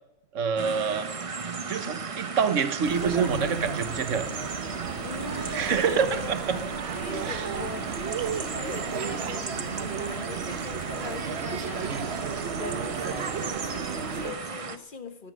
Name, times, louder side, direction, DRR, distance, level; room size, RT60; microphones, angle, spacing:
voice 1, 0.3-1.1 1.7-4.3 5.5-6.6 7.2-7.5 11.9-12.0, right 6 dB, 80° right, 11 dB, 1.4 m, -27 dB
sound 1, 0.6-14.8, right 4 dB, 30° right, 0.7 m, -36 dB
sound 2, 2.8-14.3, right 6 dB, 60° right, 1.2 m, -34 dB
sound 3, 3.1-13.3, right 1 dB, 80° left, 4.1 m, -45 dB
voice 2, 5.0-6.6 7.0-7.9 8.3-12.2 12.6-15.3, left 5 dB, 45° left, 8 dB, 1.4 m, -40 dB
17.0 x 10.5 x 6.2 m, 0.88 s
omnidirectional pair, 1.3 m